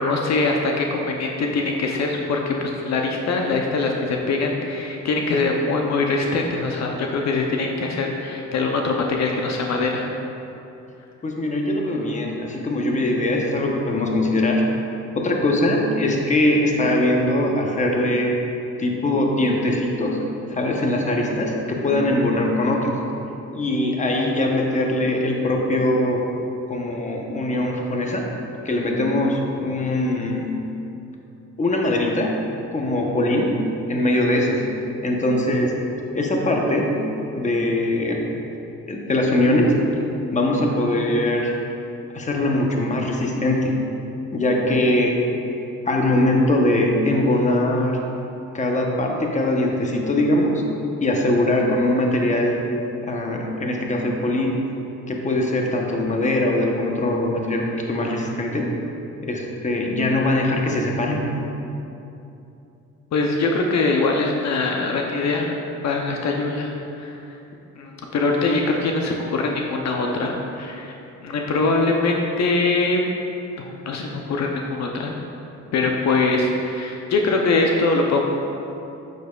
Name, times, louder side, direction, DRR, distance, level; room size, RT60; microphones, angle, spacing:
voice 1, 0.0-10.1 63.1-65.6 65.8-67.2 67.8-70.9 71.2-73.0 73.6-75.1 75.7-78.3, left 3 dB, 60° left, 1 dB, 0.7 m, -23 dB
voice 2, 11.2-14.6 15.1-18.3 18.8-20.2 20.5-23.0 23.5-26.2 26.7-28.3 28.6-30.5 31.6-32.3 32.7-33.5 33.9-34.6 35.0-35.7 36.1-36.9 37.3-38.2 38.9-39.7 40.3-41.5 42.1-43.7 44.3-45.2 45.8-48.0 48.5-50.6 51.0-52.6 53.0-54.6 55.1-58.6 59.2-61.3, left 1 dB, 25° left, 0 dB, 0.9 m, -21 dB
8.0 x 6.6 x 2.4 m, 2.8 s
cardioid pair, 90°, 30 cm